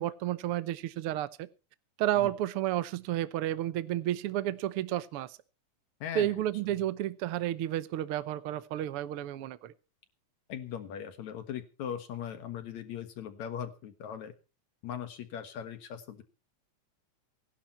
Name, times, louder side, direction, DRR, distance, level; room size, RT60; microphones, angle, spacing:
voice 1, 0.0-1.5 2.0-5.4 6.1-9.7, right 13 dB, 70° right, 1.4 m, -31 dB
voice 2, 6.0-6.4 10.5-14.3 14.8-16.2, left 9 dB, 65° left, 2.6 m, -39 dB
18.0 x 12.0 x 4.4 m
omnidirectional pair, 3.5 m